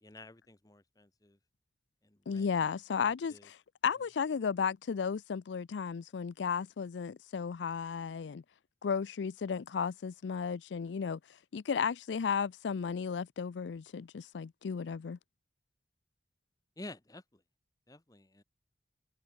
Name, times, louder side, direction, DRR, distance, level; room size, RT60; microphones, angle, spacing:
voice 1, 0.0-1.4 2.0-2.5 3.0-3.5 16.8-17.4 17.9-18.4, left 2 dB, 20° left, 1.2 m, -51 dB
voice 2, 2.3-3.6 3.8-8.4 8.8-11.2 11.5-15.2, left 6 dB, 90° left, 0.4 m, -34 dB
open air
head